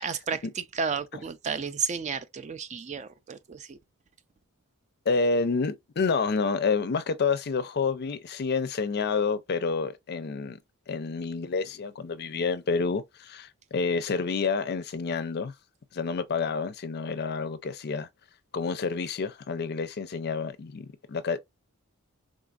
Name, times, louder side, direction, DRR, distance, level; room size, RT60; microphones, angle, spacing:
voice 1, 0.0-3.8, right 5 dB, 30° right, 0.3 m, -32 dB
voice 2, 5.1-10.6 10.9-15.5 15.9-18.1 18.5-21.4, left 4 dB, 45° left, 0.4 m, -29 dB
3.7 x 2.5 x 2.3 m
head